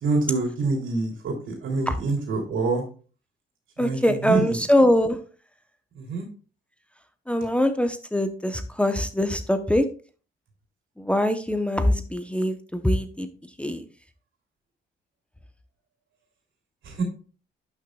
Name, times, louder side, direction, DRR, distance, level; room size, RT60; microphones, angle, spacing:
voice 1, 0.0-2.8 3.8-4.0 4.2-4.5 6.0-6.2 16.8-17.0, right 3 dB, 75° right, 2 dB, 3.0 m, -26 dB
voice 2, 3.8-5.2 7.3-9.9 11.0-13.3 13.6-13.8, left 1 dB, 5° left, 8 dB, 0.8 m, -23 dB
11.0 x 6.2 x 2.3 m, 0.38 s
cardioid pair, 90°, 20 cm